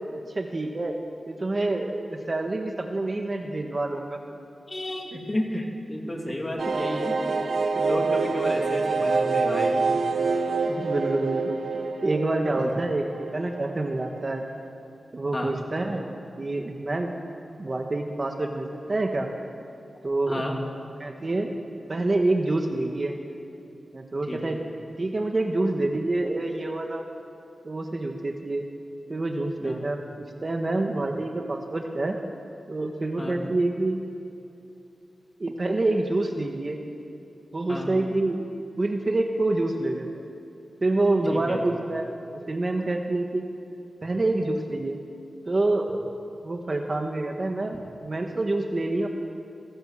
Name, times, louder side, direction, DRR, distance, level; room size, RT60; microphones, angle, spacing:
voice 1, 0.3-0.9 1.3-4.2 5.1-5.2 5.5-5.6 8.2-8.7 10.5-14.4 15.1-16.0 16.4-17.1 17.6-19.3 20.0-20.5 21.0-21.6 21.9-23.2 23.9-24.6 25.0-27.0 27.6-28.6 29.1-32.2 32.7-34.0 35.4-36.8 37.5-38.4 38.8-40.3 40.8-42.1 42.5-43.4 44.0-45.0 45.5-46.0 46.4-49.1, right 2 dB, 30° right, 3 dB, 1.6 m, -27 dB
voice 2, 4.7-7.1 7.8-9.8 12.6-12.7 15.3-15.5 20.3-20.5 24.3-24.4 29.6-29.8 33.2-33.4 37.7-37.9 41.3-41.6, left 1 dB, 20° left, 1 dB, 3.1 m, -32 dB
sound 1, 6.6-14.1 14.3-14.4 14.7-14.8, right 4 dB, 65° right, 1.3 m, -26 dB
28.5 x 18.5 x 7.5 m, 2.7 s
wide cardioid pair, 175°, 0 cm